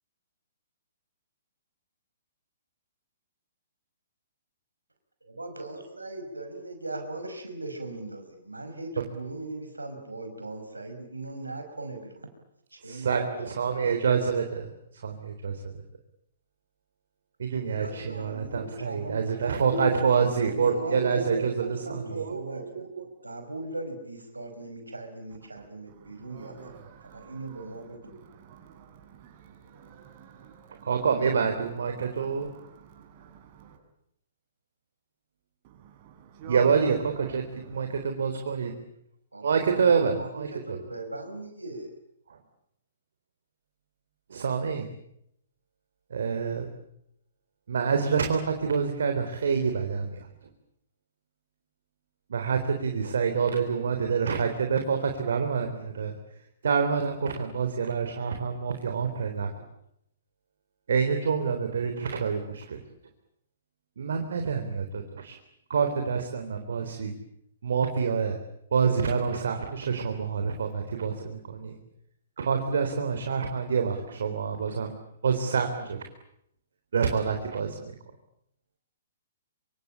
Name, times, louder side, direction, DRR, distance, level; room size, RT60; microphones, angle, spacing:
voice 1, 5.2-12.3 12.7-13.5 17.7-20.0 20.3-26.7 27.0-28.2 39.3-39.9 40.1-41.9, right 2 dB, 85° right, 5.4 m, -38 dB
voice 2, 12.8-15.8 17.4-22.7 23.0-23.1 30.8-32.5 36.5-38.7 39.4-40.8 42.3-42.4 44.3-44.9 46.1-46.7 47.7-50.5 52.3-56.2 56.6-59.6 60.9-62.8 64.0-65.4 65.7-67.2 67.6-68.4 68.7-71.8 72.4-74.9 75.2-76.0 76.9-77.9, right 6 dB, 60° right, 3.7 m, -27 dB
voice 3, 25.6-31.1 31.9-33.8 35.6-38.0, right 6 dB, 40° right, 7.8 m, -48 dB
26.5 x 25.5 x 8.7 m
figure-of-eight pair, 120°, 0 cm